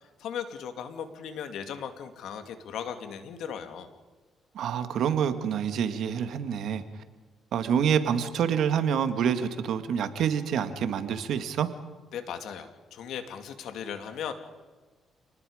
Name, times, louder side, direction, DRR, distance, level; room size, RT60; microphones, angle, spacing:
voice 1, 0.2-3.9 12.1-14.3, left 8 dB, 80° left, 7 dB, 2.5 m, -37 dB
voice 2, 4.6-6.8 7.5-11.7, right 8 dB, 75° right, 9 dB, 1.9 m, -27 dB
29.0 x 19.5 x 5.1 m, 1.3 s
cardioid pair, 90°, 0 cm